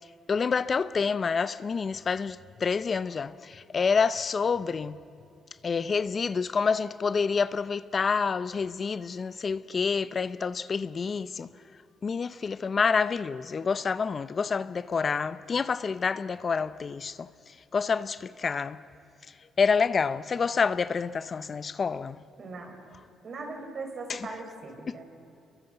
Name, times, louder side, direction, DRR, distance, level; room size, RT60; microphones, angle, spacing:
voice 1, 0.3-5.0 5.6-11.5 12.0-18.8 19.6-22.2 24.1-24.3 24.9-25.0, left 5 dB, 40° left, 0.6 m, -28 dB
voice 2, 22.4-22.7 23.2-25.0, right 3 dB, 50° right, 5.1 m, -39 dB
25.0 x 23.0 x 8.0 m
cardioid pair, 90°, 0 cm